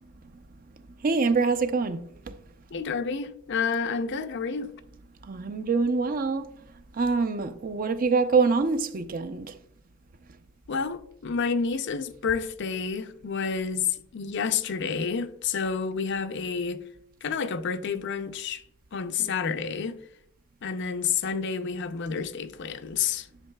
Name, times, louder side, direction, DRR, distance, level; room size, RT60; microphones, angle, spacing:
voice 1, 1.0-2.0 5.3-6.4 7.0-9.5, right 4 dB, 40° right, 0.5 m, -24 dB
voice 2, 2.7-4.7 10.7-16.8 17.2-18.6 18.9-20.0 20.6-23.3, left 6 dB, 55° left, 0.5 m, -29 dB
11.0 x 6.4 x 2.2 m
head